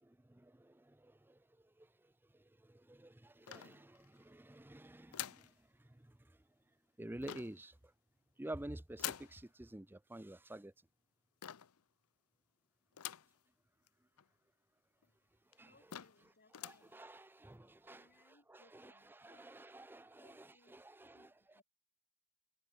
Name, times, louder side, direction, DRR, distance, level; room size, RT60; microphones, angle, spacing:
voice 1, 0.0-5.5 5.8-6.4 7.0-7.8 8.4-10.7 15.5-15.7 16.6-21.3, right 1 dB, 10° right, 0.5 m, -51 dB
sound 1, 3.5-4.2 5.1-5.5 7.2-7.7 9.0-9.4 11.4-11.8 13.0-13.4 13.9-14.0 14.2-14.3 15.0-15.1 15.5-15.6 15.9-16.2 16.5-16.9, left 12 dB, 85° left, 0.7 m, -46 dB
voice 2, 15.6-17.1 17.9-19.7 20.2-20.8 21.1-21.6, left 2 dB, 45° left, 6.6 m, -71 dB
head